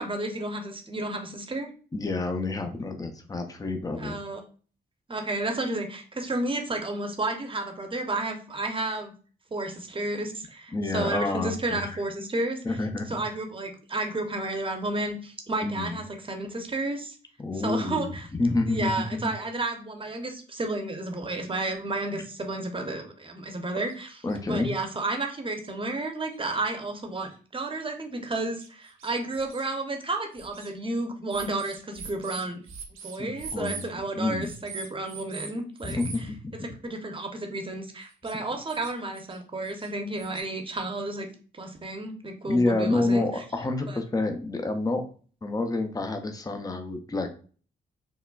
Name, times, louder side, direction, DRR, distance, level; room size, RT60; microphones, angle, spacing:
voice 1, 0.0-1.7 4.0-4.4 5.1-9.1 9.5-12.6 13.1-17.2 17.6-18.3 18.7-32.6 33.0-36.3 36.8-41.3 41.5-43.3 43.9-44.0, right 2 dB, 25° right, 4 dB, 0.8 m, -32 dB
voice 2, 1.9-4.2 10.7-12.0 12.6-13.1 15.6-16.0 17.4-19.3 22.1-22.2 24.2-24.7 33.2-33.8 34.2-34.5 35.8-36.6 42.5-45.0 45.4-47.3, left 2 dB, 15° left, 6 dB, 0.5 m, -28 dB
sound 1, 23.9-24.0 24.3-24.4 25.2-25.3 25.6-25.7 26.3-26.4 27.3-27.4 27.8-27.9 28.6-29.6 30.3-30.7 31.3-33.9 34.4-35.5 35.8-36.2 38.0-38.4 38.7-39.4 39.6-40.4, right 5 dB, 75° right, 0.6 m, -42 dB
3.7 x 2.1 x 2.3 m, 0.40 s
supercardioid pair, 45°, 21 cm